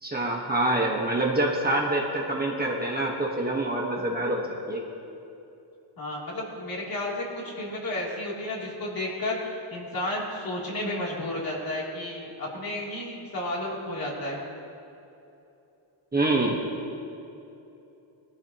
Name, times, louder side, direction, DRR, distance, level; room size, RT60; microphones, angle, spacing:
voice 1, 0.0-4.8 16.1-16.6, right 2 dB, 20° right, -2 dB, 1.3 m, -26 dB
voice 2, 6.0-14.4, left 1 dB, 45° left, -4 dB, 3.1 m, -32 dB
21.5 x 13.5 x 3.0 m, 2.8 s
wide cardioid pair, 155°, 48 cm